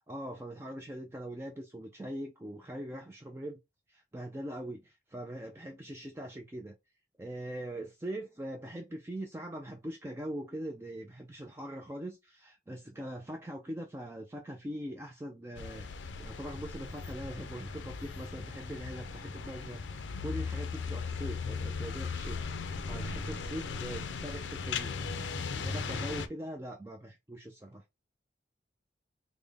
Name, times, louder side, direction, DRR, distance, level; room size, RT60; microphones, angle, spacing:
voice 1, 0.1-3.6 3.9-6.8 7.2-24.9 25.5-27.8, right 1 dB, 15° right, 0.3 m, -42 dB
sound 1, 15.5-26.3, left 4 dB, 80° left, 0.4 m, -37 dB
3.5 x 2.1 x 3.4 m
head